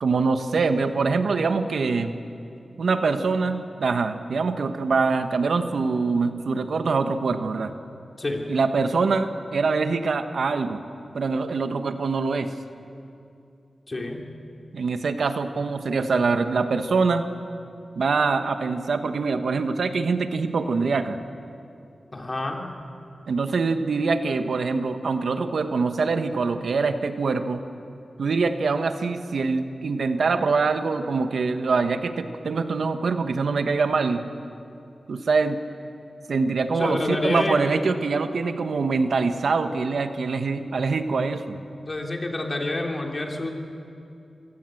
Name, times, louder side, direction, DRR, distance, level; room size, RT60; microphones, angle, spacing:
voice 1, 0.0-2.1 2.8-7.7 8.5-10.8 11.1-12.5 14.7-17.3 18.0-21.2 23.3-27.6 28.2-34.2 35.1-35.6 36.3-41.6, right 4 dB, 80° right, 8 dB, 1.2 m, -24 dB
voice 2, 13.9-14.2 22.1-22.6 36.7-37.6 41.9-43.5, left 2 dB, 40° left, 1 dB, 3.5 m, -28 dB
25.5 x 17.5 x 7.8 m, 2.6 s
cardioid pair, 65°, 0 cm